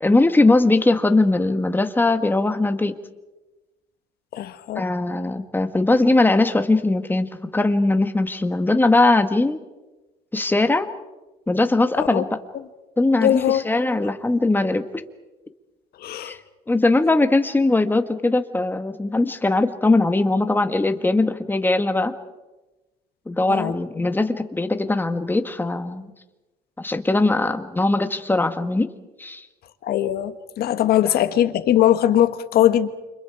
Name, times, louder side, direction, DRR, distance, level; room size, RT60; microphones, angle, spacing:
voice 1, 0.0-3.0 4.8-7.3 7.5-9.6 10.3-10.9 11.5-12.3 13.0-15.0 16.2-16.4 16.7-22.1 23.3-26.1 26.8-28.9 29.2-29.5, left 2 dB, 10° left, 1.7 m, -20 dB
voice 2, 4.3-4.8 12.0-12.2 13.2-13.6 16.0-16.4 23.5-23.7 29.8-32.9, left 11 dB, 70° left, 1.6 m, -20 dB
29.0 x 26.5 x 4.9 m
cardioid pair, 110°, 17 cm